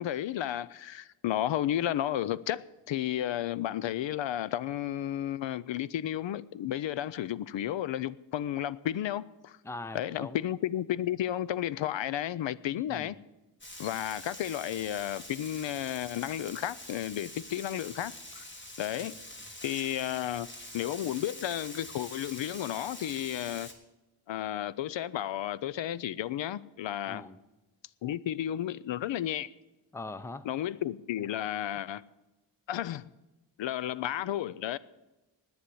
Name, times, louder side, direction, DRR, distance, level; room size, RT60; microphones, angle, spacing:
voice 1, 0.0-9.6 9.9-13.2 13.8-18.4 18.8-19.1 19.6-20.5 20.7-23.7 24.3-27.2 28.0-29.5 30.4-32.0 32.7-33.1 33.6-34.8, left 12 dB, 75° left, 0.5 m, -33 dB
voice 2, 9.6-10.4 12.9-13.1 27.1-27.4 29.9-30.5, left 2 dB, 5° left, 0.5 m, -41 dB
Frying (food), 13.6-23.7, left 1 dB, 25° left, 1.5 m, -45 dB
10.5 x 9.4 x 8.4 m
wide cardioid pair, 175°, 45 cm